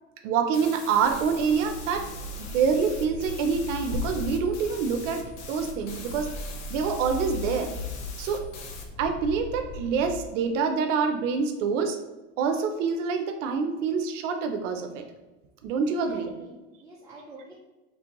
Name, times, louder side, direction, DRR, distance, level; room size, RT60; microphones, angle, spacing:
voice 1, 0.2-2.1 2.4-6.3 6.7-7.7 8.2-8.4 9.0-12.0 12.4-15.0 15.6-16.3, right 6 dB, 75° right, 5 dB, 0.6 m, -26 dB
sound 1, 0.5-8.8, left 5 dB, 70° left, 0.8 m, -44 dB
sound 2, 0.8-10.4, left 3 dB, 30° right, 0.8 m, -38 dB
voice 2, 15.9-17.5, right 2 dB, 10° right, -7 dB, 0.3 m, -47 dB
3.2 x 2.6 x 2.9 m, 1.1 s
supercardioid pair, 120°, 37 cm